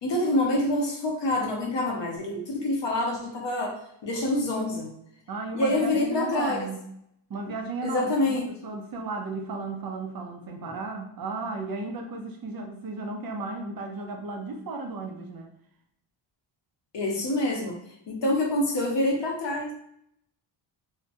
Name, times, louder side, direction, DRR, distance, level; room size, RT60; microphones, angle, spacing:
voice 1, 0.0-4.9 5.5-6.7 7.8-8.5 10.7-10.8 16.9-17.8 18.1-19.7, left 1 dB, 60° left, 0 dB, 0.9 m, -26 dB
voice 2, 5.3-6.9 7.3-15.5, right 3 dB, 50° right, 2 dB, 0.5 m, -34 dB
2.8 x 2.1 x 2.7 m, 0.73 s
cardioid pair, 95°, 48 cm